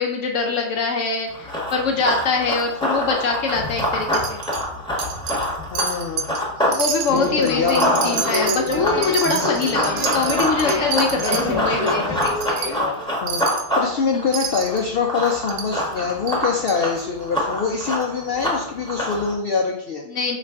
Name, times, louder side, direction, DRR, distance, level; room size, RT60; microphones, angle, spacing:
voice 1, 0.0-4.4 6.7-12.2 14.1-14.3 20.1-20.4, left 4 dB, 65° left, 2 dB, 0.8 m, -23 dB
Run, 1.3-6.8 7.1-19.3, equal, 5° left, 0.9 m, -26 dB
Wind chime, 4.1-4.6 5.0-5.5 5.7-6.4 6.7-11.4 11.9-12.0 12.2-12.7 13.3-13.7 14.3-14.8 15.5-15.7 16.3-16.4 16.7-16.8, right 6 dB, 80° right, 1.1 m, -28 dB
voice 2, 5.7-6.3 6.6-7.9 13.2-13.5 13.8-20.0, left 5 dB, 85° left, 1 dB, 0.5 m, -24 dB
sound 1, 7.1-13.0, left 2 dB, 30° left, 0.9 m, -27 dB
5.7 x 2.5 x 3.4 m, 0.71 s
omnidirectional pair, 1.6 m